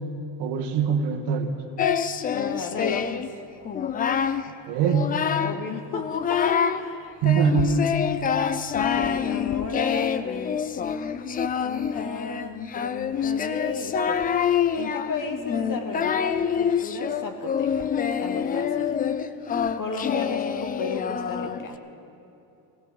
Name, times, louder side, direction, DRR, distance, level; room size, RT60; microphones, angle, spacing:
voice 1, 0.4-1.5 4.7-5.1 7.2-7.9, right 6 dB, 55° right, 4 dB, 1.6 m, -23 dB
Singing, 1.8-3.3 3.6-4.4 4.8-5.6 5.9-6.8 7.2-21.7, left 7 dB, 20° left, 0.3 m, -26 dB
voice 2, 2.3-3.3 5.4-7.2 8.7-10.2 11.6-14.4 14.8-17.9 18.2-18.9 19.8-21.8, left 4 dB, 40° left, 6 dB, 1.7 m, -34 dB
20.0 x 16.5 x 3.8 m, 2.9 s
supercardioid pair, 110°, 50 cm